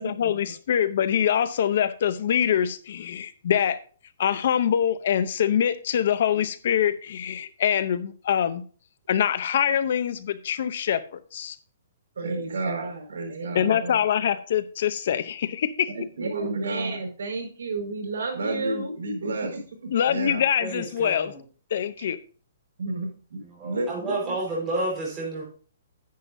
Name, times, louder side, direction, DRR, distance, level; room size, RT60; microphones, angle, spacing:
voice 1, 0.0-3.8 4.2-8.6 9.1-11.6 13.5-15.9 19.9-21.3 21.7-22.2, left 9 dB, 55° left, 0.7 m, -24 dB
voice 2, 12.2-14.0 15.9-20.4 22.0-22.1 22.8-24.3, right 2 dB, 80° right, 4.9 m, -31 dB
voice 3, 20.6-21.4 23.4-25.4, right 2 dB, 15° right, 4.4 m, -30 dB
10.5 x 9.7 x 2.7 m
hypercardioid pair, 165°, 0 cm